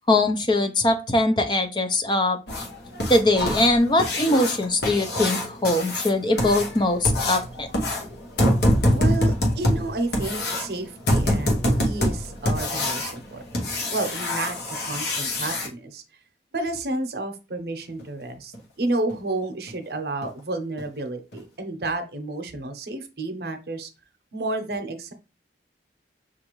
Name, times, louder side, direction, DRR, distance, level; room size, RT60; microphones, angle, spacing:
voice 1, 0.1-2.4 3.1-7.7, left 2 dB, 25° left, 7 dB, 0.4 m, -21 dB
sound 1, 2.5-15.7 18.0-18.1 18.5-18.6 19.1-19.2 19.7-19.8 20.2-20.4 20.8-20.9 21.3-21.4, left 1 dB, 65° left, 0.9 m, -25 dB
voice 2, 8.9-13.4 13.9-14.6 14.8-16.0 16.5-23.9 24.3-25.1, right 2 dB, 65° right, 7 dB, 0.7 m, -31 dB
6.2 x 2.4 x 3.0 m, 0.31 s
head